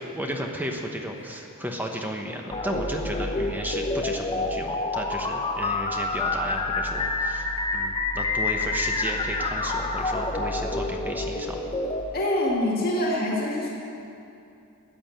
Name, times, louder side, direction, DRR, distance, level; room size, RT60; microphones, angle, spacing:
voice 1, 0.2-7.5 7.7-11.6, equal, 10° right, 2 dB, 1.0 m, -33 dB
sound 1, 2.5-12.0, left 2 dB, 25° left, 0.9 m, -28 dB
voice 2, 12.1-13.7, left 1 dB, 45° left, -3 dB, 2.1 m, -25 dB
14.5 x 9.5 x 7.8 m, 2.6 s
head